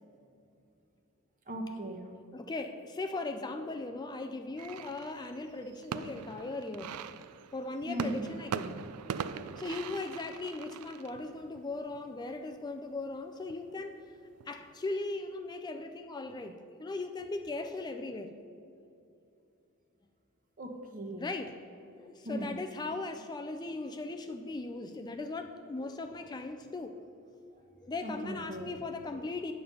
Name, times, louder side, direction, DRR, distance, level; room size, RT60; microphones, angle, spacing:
voice 1, 1.5-2.1 7.9-8.2 20.6-21.2 22.2-22.6 28.0-28.7, right 1 dB, 40° right, 3 dB, 1.1 m, -38 dB
voice 2, 2.3-6.9 7.5-8.8 9.6-14.0 14.5-18.3 21.2-21.6 21.9-26.9 27.3-27.4 27.8-29.5, left 3 dB, 20° left, 6 dB, 0.3 m, -38 dB
sound 1, 4.6-14.7, right 7 dB, 90° right, 0.4 m, -42 dB
9.2 x 6.8 x 5.4 m, 2.6 s
head